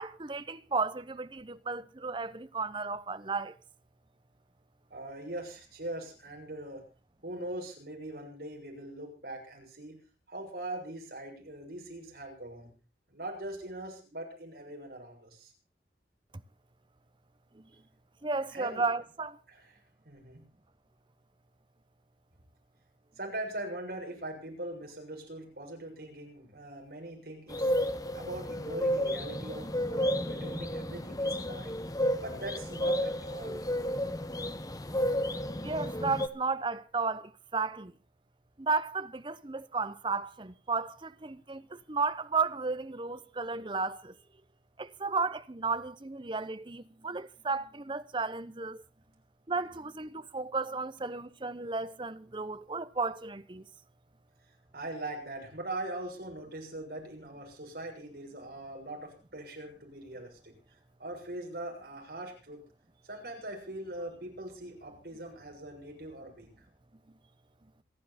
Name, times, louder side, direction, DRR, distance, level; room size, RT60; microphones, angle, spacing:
voice 1, 0.0-3.6 17.6-17.7 18.2-19.4 35.6-37.9 38.6-44.1 44.8-48.8 49.5-53.7, right 4 dB, 25° right, 0.8 m, -33 dB
voice 2, 4.9-6.8 7.2-10.0 10.3-12.7 13.1-15.5 18.5-18.9 19.5-19.8 20.0-20.4 23.2-27.7 28.1-31.8 32.2-33.6 54.7-60.5 61.0-62.6 63.0-66.6, right 1 dB, 60° right, 6.8 m, -41 dB
sound 1, 27.5-36.3, equal, 20° left, 1.1 m, -32 dB
27.5 x 10.0 x 4.2 m
head